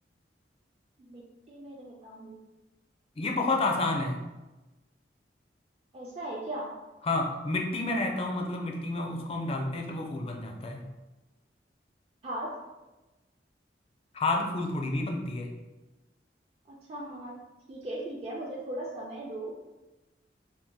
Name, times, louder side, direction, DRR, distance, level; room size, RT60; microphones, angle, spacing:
voice 1, 1.5-2.4 5.9-6.7 12.2-12.5 16.7-17.3 17.7-19.5, right 1 dB, 35° right, -4 dB, 0.4 m, -38 dB
voice 2, 3.2-4.2 7.0-10.8 14.1-15.5, left 2 dB, 35° left, 2 dB, 0.4 m, -30 dB
2.7 x 2.6 x 3.7 m, 1.1 s
head